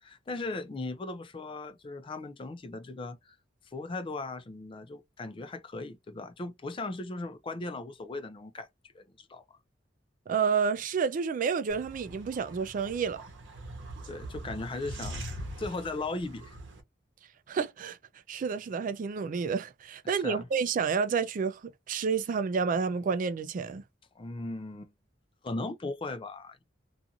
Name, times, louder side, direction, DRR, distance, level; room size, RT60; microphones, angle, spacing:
voice 1, 0.0-3.4 3.7-8.7 8.9-9.6 14.1-15.2 15.6-16.5 20.0-20.5 24.2-24.9 25.4-26.6, left 2 dB, 30° left, 0.4 m, -38 dB
voice 2, 10.3-13.2 17.5-18.0 18.3-21.6 21.9-23.8, right 5 dB, 45° right, 0.3 m, -29 dB
sound 1, 11.7-16.8, right 1 dB, 75° right, 0.8 m, -42 dB
2.5 x 2.4 x 2.7 m
head